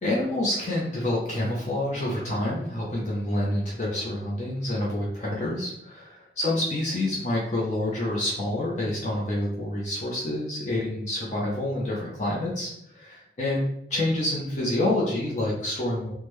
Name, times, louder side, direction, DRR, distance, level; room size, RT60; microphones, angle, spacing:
voice 1, 0.0-16.1, left 1 dB, 40° left, -5 dB, 0.6 m, -28 dB
3.5 x 2.1 x 3.1 m, 0.81 s
head